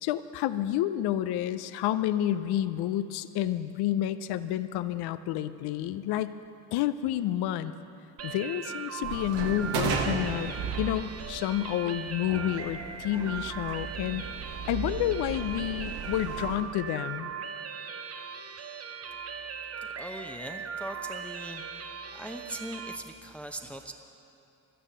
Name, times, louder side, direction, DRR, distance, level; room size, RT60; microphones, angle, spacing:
voice 1, 0.0-6.3 6.7-7.7 8.2-14.2 14.7-17.3, left 12 dB, 65° left, 13 dB, 0.7 m, -30 dB
sound 1, 8.2-23.0, right 6 dB, 35° right, 0.8 m, -39 dB
sound 2, 9.0-16.6, right 5 dB, 60° right, 1.4 m, -35 dB
voice 2, 19.8-23.9, right 1 dB, 5° left, 5 dB, 0.8 m, -41 dB
12.0 x 10.0 x 6.8 m, 2.7 s
hypercardioid pair, 55°, 42 cm